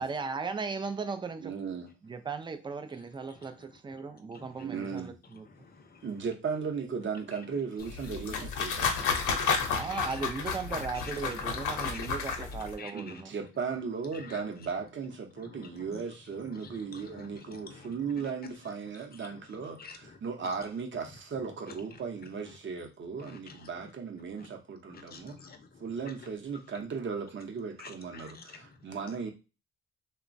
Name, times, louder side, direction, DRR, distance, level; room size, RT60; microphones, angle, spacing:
voice 1, 0.0-1.5 2.0-5.5 9.7-13.3, right 4 dB, 15° right, 0.3 m, -37 dB
voice 2, 1.4-1.9 4.6-5.2 6.0-9.0 12.9-25.3 25.8-29.3, right 5 dB, 40° right, 0.7 m, -36 dB
voice 3, 4.3-4.7 5.4-6.1 7.3-7.4 8.0-8.4 9.0-10.2 10.8-11.1 11.7-12.3 12.6-13.2 14.1-14.4 15.4-16.0 16.3-18.1 18.9-19.5 19.8-20.5 21.9-22.0 22.4-22.9 23.2-23.9 24.4-24.5 24.9-26.1 27.8-28.8, left 4 dB, 30° left, 0.6 m, -50 dB
sound 1, 7.8-12.7, left 5 dB, 80° left, 0.8 m, -31 dB
2.9 x 2.2 x 2.5 m
cardioid pair, 90°, 30 cm